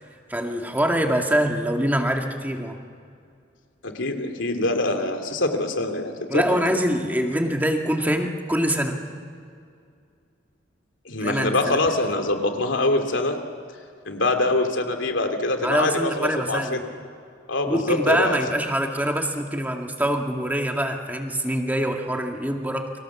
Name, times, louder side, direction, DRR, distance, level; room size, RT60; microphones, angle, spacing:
voice 1, 0.3-2.8 6.3-9.0 11.2-11.8 15.6-16.8 17.7-22.9, right 1 dB, 10° right, 2 dB, 2.1 m, -24 dB
voice 2, 3.8-6.8 11.0-13.4 14.0-16.9 17.5-18.4, left 2 dB, 85° left, 5 dB, 2.9 m, -24 dB
30.0 x 24.5 x 7.2 m, 2.3 s
head